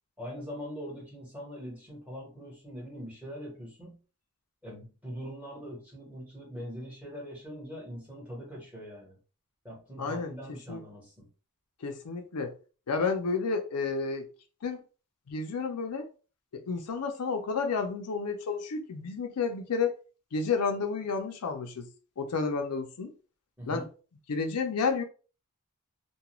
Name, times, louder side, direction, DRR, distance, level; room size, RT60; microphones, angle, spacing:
voice 1, 0.2-4.0 4.6-9.2 9.6-11.3 23.6-23.9, equal, 5° right, 1.1 m, -42 dB
voice 2, 10.0-10.3 10.7-10.8 11.8-12.5 12.9-14.3 14.6-14.8 15.3-16.1 16.5-19.9 20.3-21.9 22.2-23.1 23.7-23.8 24.3-25.0, left 4 dB, 85° left, 0.5 m, -31 dB
2.3 x 2.2 x 3.0 m
head